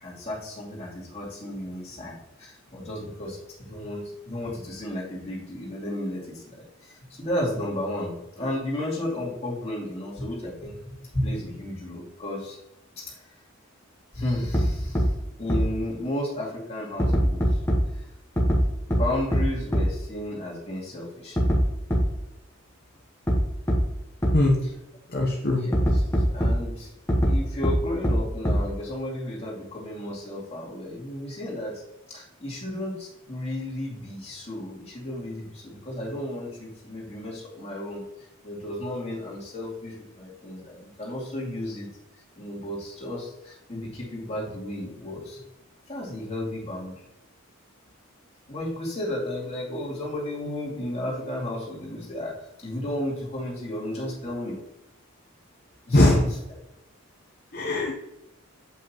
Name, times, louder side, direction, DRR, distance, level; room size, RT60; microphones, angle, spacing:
voice 1, 0.0-12.6 13.0-13.3 14.1-15.1 15.4-17.6 17.9-18.1 18.9-21.4 24.6-24.8 25.5-26.9 27.2-31.8 32.1-45.4 45.9-46.9 48.5-54.6 55.9-56.4, left 1 dB, 30° left, -5 dB, 2.3 m, -33 dB
sound 1, 14.5-14.6 14.9-15.0 15.5-15.6 17.0-17.8 18.4-18.6 18.9-19.0 19.3-19.4 19.7-19.8 21.4-21.6 21.9-22.0 23.3-23.4 23.7-23.8 24.2-24.3 25.7-26.5 27.1-27.3 27.6-27.7 28.0-28.1 28.4-28.5, equal, 10° left, 1.2 m, -22 dB
voice 2, 25.1-25.6 55.9-56.2 57.5-57.9, left 1 dB, 45° left, -2 dB, 0.9 m, -21 dB
7.7 x 5.5 x 3.0 m, 0.91 s
head